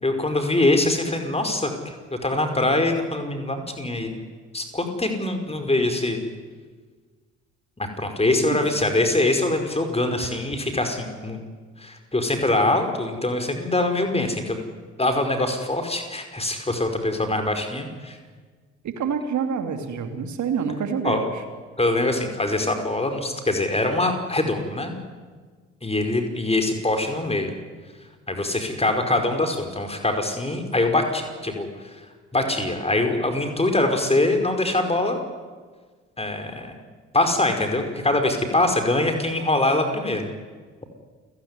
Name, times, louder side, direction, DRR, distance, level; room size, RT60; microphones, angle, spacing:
voice 1, 0.0-4.2 4.5-6.2 7.8-11.4 11.8-14.6 15.0-18.2 21.0-21.3 21.8-25.0 25.8-27.5 28.3-31.7 32.3-35.2 36.2-36.7 37.1-40.3, left 2 dB, 15° left, 5 dB, 5.1 m, -23 dB
voice 2, 8.4-8.9 18.8-21.4, right 6 dB, 50° right, 7 dB, 2.8 m, -27 dB
29.0 x 17.5 x 9.8 m, 1.5 s
figure-of-eight pair, 45°, 37 cm